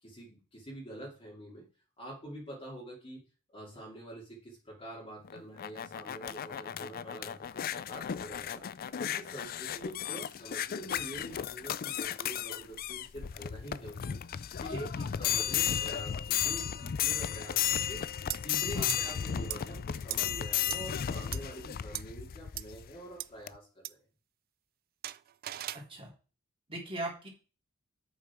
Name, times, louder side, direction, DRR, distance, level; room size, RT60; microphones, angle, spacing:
voice 1, 0.0-1.7 2.0-3.2 3.5-8.6 9.0-14.2 14.6-14.9 15.2-18.0 18.4-24.0, right 1 dB, 30° left, -6 dB, 2.7 m, -46 dB
sound 1, 5.2-22.9 23.5-23.6, left 9 dB, 45° left, 0.4 m, -34 dB
voice 2, 14.7-15.1 18.7-18.9 25.7-26.1 26.7-27.3, right 1 dB, 25° right, -2 dB, 3.5 m, -39 dB
sound 2, 18.3-18.4 18.9-19.0 19.5-19.6 20.1-20.2 20.7-20.8 21.3-21.4 21.9-22.0 22.6-22.7 23.2-23.3 23.8-23.9 25.0-25.8, right 15 dB, 45° right, 0.3 m, -37 dB
8.6 x 7.3 x 4.5 m, 0.36 s
head